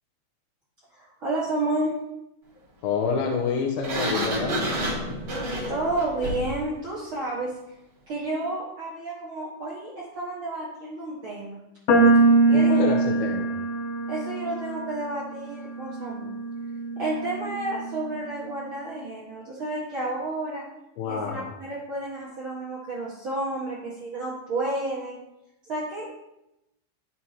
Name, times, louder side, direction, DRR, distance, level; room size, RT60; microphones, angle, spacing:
voice 1, 0.9-1.9 5.7-7.5 8.1-11.6 12.5-12.9 14.1-16.3 17.0-20.6 21.1-25.2 25.7-26.1, right 2 dB, 55° right, -7 dB, 1.4 m, -31 dB
voice 2, 2.8-4.6 12.5-13.5 21.0-21.5, left 5 dB, 80° left, 1 dB, 2.2 m, -27 dB
Sliding door, 3.8-6.6, right 1 dB, 35° right, 1.9 m, -29 dB
sound 1, 11.9-18.2, right 3 dB, 60° left, 2.4 m, -23 dB
12.5 x 6.2 x 2.9 m, 0.90 s
omnidirectional pair, 5.1 m